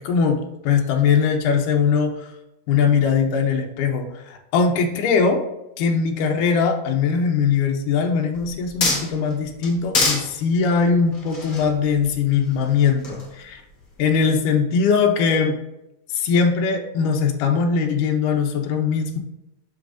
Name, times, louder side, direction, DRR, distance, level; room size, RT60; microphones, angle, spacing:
voice 1, 0.0-2.3 2.7-5.4 5.8-13.6 14.0-15.6 16.1-19.2, left 5 dB, 80° left, 3 dB, 2.4 m, -21 dB
sound 1, 8.3-9.3 9.6-10.3 11.1-12.6 13.0-13.3, left 3 dB, 50° left, 1.1 m, -24 dB
8.2 x 6.1 x 2.6 m, 0.93 s
omnidirectional pair, 3.6 m